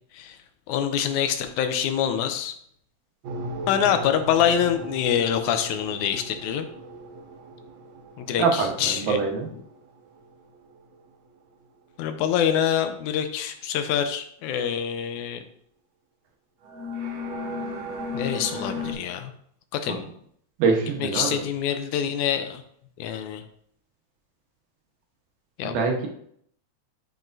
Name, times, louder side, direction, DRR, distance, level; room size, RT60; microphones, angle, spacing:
voice 1, 0.7-2.5 3.7-6.7 8.2-9.2 12.0-15.4 18.1-19.3 19.7-20.1 21.0-22.6 23.0-23.4 25.6-25.7, left 9 dB, 80° left, 8 dB, 2.0 m, -25 dB
sound 1, 3.2-9.7 10.4-10.6 16.6-18.9, left 1 dB, 65° right, 2.1 m, -36 dB
voice 2, 8.4-9.5 19.9-20.0 20.6-21.4 25.6-26.1, right 5 dB, 90° right, 1 dB, 2.6 m, -24 dB
8.8 x 5.4 x 2.6 m, 0.66 s
omnidirectional pair, 3.5 m